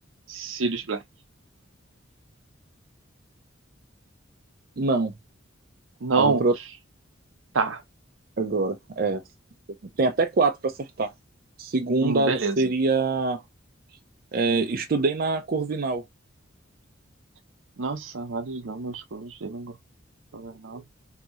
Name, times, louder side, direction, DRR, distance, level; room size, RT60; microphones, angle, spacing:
voice 1, 0.3-1.0 6.0-6.4 7.5-7.8 12.0-12.6 17.8-19.8 20.3-20.8, right 4 dB, 80° right, 0.7 m, -27 dB
voice 2, 4.8-5.1 6.2-6.5 8.4-9.2 10.0-11.1 11.6-13.4 14.3-16.0, right 3 dB, 50° right, 0.5 m, -24 dB
2.8 x 2.7 x 2.4 m
head